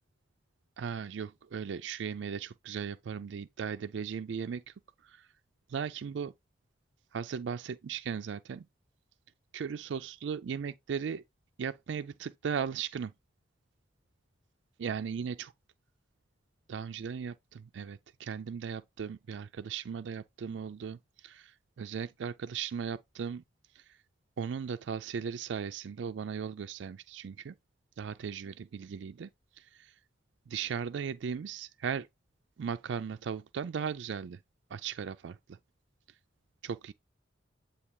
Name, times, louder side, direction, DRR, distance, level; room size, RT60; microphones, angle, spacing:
voice 1, 0.8-4.6 5.7-6.3 7.1-8.6 9.5-11.2 11.6-13.1 14.8-15.5 16.7-21.0 21.2-21.5 21.8-23.4 24.4-27.5 28.0-29.3 30.5-32.1 32.6-34.4 34.7-35.4 36.6-36.9, right 7 dB, 70° right, 0.4 m, -37 dB
8.4 x 2.9 x 4.6 m
head